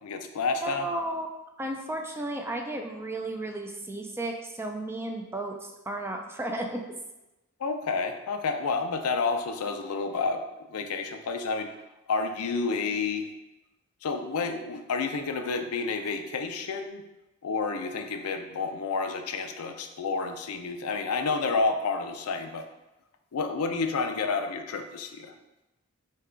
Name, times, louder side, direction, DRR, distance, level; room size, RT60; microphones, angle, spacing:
voice 1, 0.0-0.9 7.6-10.4 10.7-11.7 12.1-13.3 14.0-17.1 17.4-22.6 23.3-25.3, left 4 dB, 85° left, 6 dB, 0.5 m, -30 dB
voice 2, 0.6-1.3 1.6-6.8, right 1 dB, 10° right, 3 dB, 0.4 m, -34 dB
5.5 x 2.3 x 3.7 m, 0.97 s
head